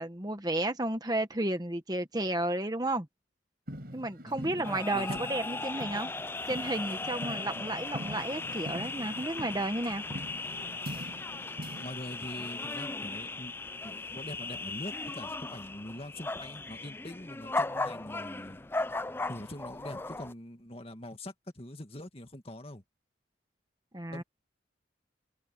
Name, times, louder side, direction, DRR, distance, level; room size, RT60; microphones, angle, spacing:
voice 1, 0.0-3.1 3.9-6.1 6.5-10.0 23.9-24.2, right 1 dB, 20° right, 1.1 m, -32 dB
sound 1, 3.7-11.9, equal, 50° right, 5.6 m, -44 dB
voice 2, 4.3-5.2 11.7-13.5 13.8-18.7 19.3-22.8 24.1-24.2, left 1 dB, 30° left, 2.2 m, -44 dB
sound 2, 4.6-20.3, left 3 dB, 10° left, 0.3 m, -37 dB
head